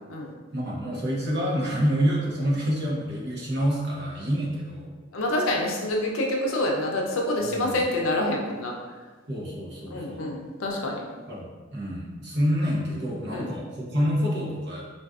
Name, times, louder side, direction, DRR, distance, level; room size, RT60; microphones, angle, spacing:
voice 1, 0.5-4.9 7.4-7.8 9.3-10.2 11.3-14.8, equal, 55° right, -3 dB, 0.8 m, -27 dB
voice 2, 5.1-8.7 9.8-11.0 13.3-13.6, left 1 dB, 90° left, 0 dB, 0.6 m, -27 dB
3.9 x 2.5 x 2.3 m, 1.4 s
head